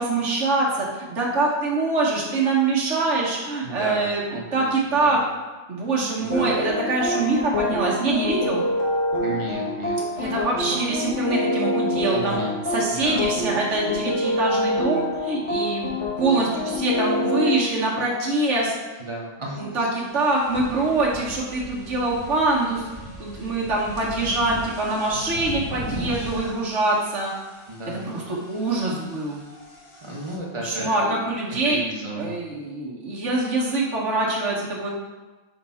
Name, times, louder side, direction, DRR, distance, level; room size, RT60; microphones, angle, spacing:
voice 1, 0.0-4.2 4.5-5.2 5.7-8.6 10.1-12.4 12.7-15.9 16.2-18.7 19.6-22.8 23.2-27.3 27.9-29.4 30.6-31.8 32.2-34.9, right 2 dB, 75° right, -4 dB, 1.5 m, -24 dB
voice 2, 3.6-4.0 4.3-5.1 6.2-6.5 9.2-10.0 10.2-10.3 12.1-12.6 12.9-13.2 19.0-19.9 25.1-25.6 26.0-26.5 27.7-28.0 30.0-31.1 31.5-32.3, right 1 dB, 25° right, -2 dB, 1.0 m, -34 dB
sound 1, 6.3-17.6, left 1 dB, 70° left, 1.5 m, -26 dB
sound 2, 19.4-19.5 20.0-30.4, right 1 dB, 25° left, 1.0 m, -39 dB
5.8 x 4.0 x 4.1 m, 1.2 s
omnidirectional pair, 1.2 m